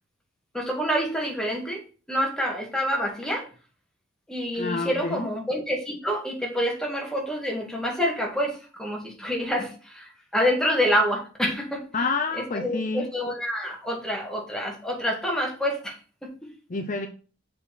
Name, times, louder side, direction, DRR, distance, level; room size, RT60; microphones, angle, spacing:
voice 1, 0.5-1.8 2.1-3.5 4.3-11.9 12.3-16.5, equal, 5° left, 0 dB, 2.0 m, -27 dB
voice 2, 4.5-5.3 11.9-13.1 16.7-17.1, left 3 dB, 40° left, 5 dB, 0.7 m, -28 dB
6.7 x 4.3 x 6.2 m, 0.37 s
head